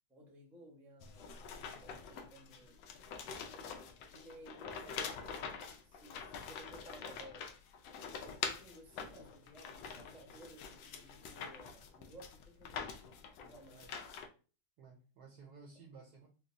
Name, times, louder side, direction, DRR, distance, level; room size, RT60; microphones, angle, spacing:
voice 1, 0.1-2.8 3.2-3.7 4.1-5.1 5.8-7.6 8.2-13.0 13.4-13.9, right 1 dB, 5° right, -1 dB, 0.4 m, -57 dB
sound 1, 1.0-14.3, left 6 dB, 80° left, 1.3 m, -45 dB
voice 2, 14.8-16.3, right 4 dB, 70° right, 1 dB, 1.0 m, -56 dB
4.8 x 2.2 x 2.6 m, 0.36 s
omnidirectional pair, 2.1 m